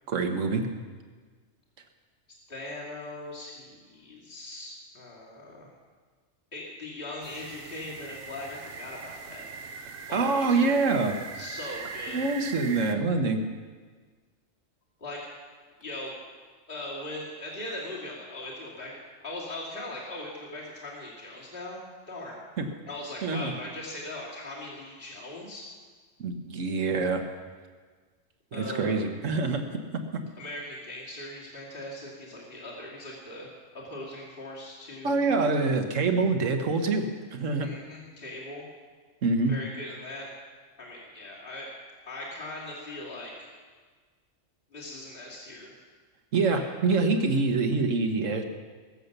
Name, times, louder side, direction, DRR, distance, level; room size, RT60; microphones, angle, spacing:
voice 1, 0.1-0.7 10.1-11.1 12.1-13.4 22.6-22.7 23.2-23.5 26.2-27.2 28.5-30.2 35.0-37.7 39.2-39.5 46.3-48.4, right 3 dB, 75° right, 5 dB, 1.6 m, -26 dB
voice 2, 2.5-5.7 6.5-9.4 10.1-10.8 11.3-12.2 15.0-15.2 15.8-16.1 16.7-21.8 22.1-22.4 22.8-25.7 28.5-29.0 30.4-33.5 33.7-35.2 37.6-38.6 39.5-40.3 40.8-41.7 42.1-43.5 44.7-45.8 46.4-46.7, left 1 dB, 45° left, -5 dB, 3.0 m, -40 dB
sound 1, 7.2-13.0, right 4 dB, 50° right, 0.9 m, -41 dB
21.5 x 7.6 x 6.7 m, 1.5 s
omnidirectional pair, 1.3 m